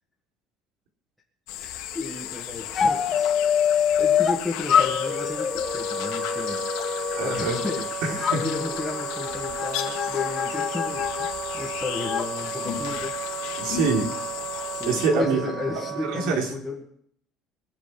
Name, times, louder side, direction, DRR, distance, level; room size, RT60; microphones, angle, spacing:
sound 1, 1.5-15.1, left 12 dB, 80° left, 2.2 m, -34 dB
voice 1, 1.5-3.3 3.7-13.2 14.7-17.0, left 3 dB, 5° left, -6 dB, 2.2 m, -34 dB
sound 2, 2.7-4.4 4.7-7.8 8.2-12.3, left 8 dB, 30° left, 1.3 m, -26 dB
Wind instrument woodwind instrument, 4.7-16.3, right 8 dB, 45° right, 2.7 m, -35 dB
voice 2, 7.2-7.6 8.0-8.5 13.6-14.1 14.6-15.6 16.0-16.5, right 4 dB, 70° right, 1 dB, 4.1 m, -25 dB
24.0 x 8.2 x 6.1 m, 0.65 s
cardioid pair, 165°, 0 cm